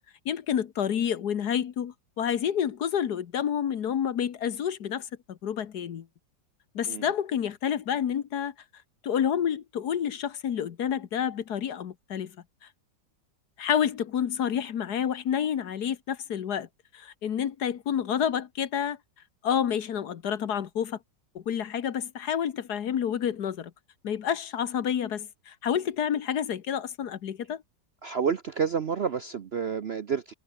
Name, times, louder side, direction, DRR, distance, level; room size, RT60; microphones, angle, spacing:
voice 1, 0.2-6.0 6.7-8.5 9.0-12.3 13.6-16.7 16.9-19.0 19.4-21.0 21.3-23.7 24.0-27.6, left 9 dB, 65° left, 1.6 m, -29 dB
voice 2, 28.0-30.3, right 6 dB, 50° right, 0.7 m, -29 dB
omnidirectional pair, 1.9 m